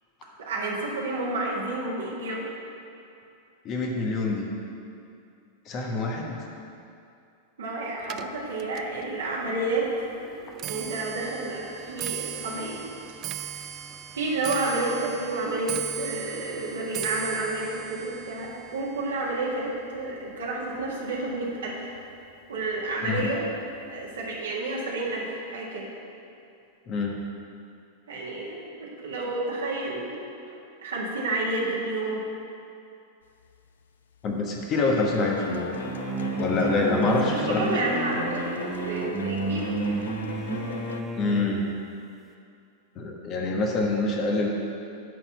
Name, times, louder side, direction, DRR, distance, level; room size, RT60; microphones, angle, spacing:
voice 1, 0.4-2.5 7.6-9.9 10.6-12.9 13.4-13.6 14.1-21.8 22.5-23.4 23.9-25.9 28.1-30.1 30.8-32.2 36.6-39.8, right 2 dB, 65° right, -4 dB, 1.8 m, -30 dB
voice 2, 3.6-4.5 5.6-6.4 23.0-23.3 26.9-27.1 34.2-35.7 36.4-37.8 41.2-41.6 43.0-44.5, left 3 dB, 35° left, 0 dB, 1.2 m, -26 dB
Clock, 8.0-21.4 21.7-22.2 23.0-23.1 23.4-23.8 24.0-24.1, right 11 dB, 35° right, 0.4 m, -39 dB
sound 1, 33.4-33.8 34.1-41.0, left 6 dB, 70° left, 0.4 m, -38 dB
sound 2, 35.7-41.6, right 2 dB, 10° right, 0.8 m, -31 dB
11.0 x 4.3 x 7.2 m, 2.6 s
figure-of-eight pair, 90°, 0 cm